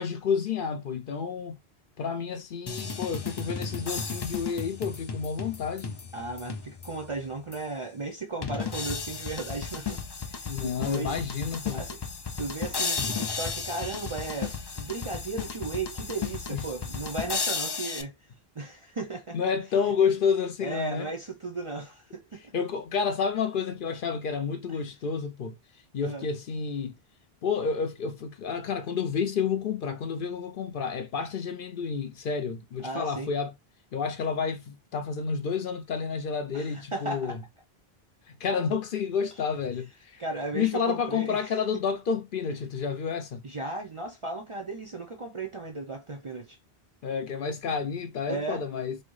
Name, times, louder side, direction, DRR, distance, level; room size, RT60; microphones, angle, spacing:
voice 1, 0.0-1.6 2.0-6.0 10.4-11.8 16.5-16.6 19.3-21.1 22.5-25.6 25.9-27.0 27.4-33.5 33.9-37.4 38.4-40.2 40.5-43.4 47.0-49.0, left 6 dB, 60° left, 0.7 m, -30 dB
sound 1, 2.7-7.1 7.5-7.6 8.4-18.0, left 5 dB, 45° left, 0.3 m, -34 dB
voice 2, 6.1-10.0 10.3-11.2 11.7-12.0 12.4-18.1 18.5-19.4 19.8-19.9 20.6-22.5 26.0-26.3 32.8-33.3 36.5-37.4 40.2-41.5 43.4-46.6 48.3-48.6, right 3 dB, 40° right, 0.5 m, -35 dB
4.1 x 2.0 x 3.0 m
omnidirectional pair, 1.1 m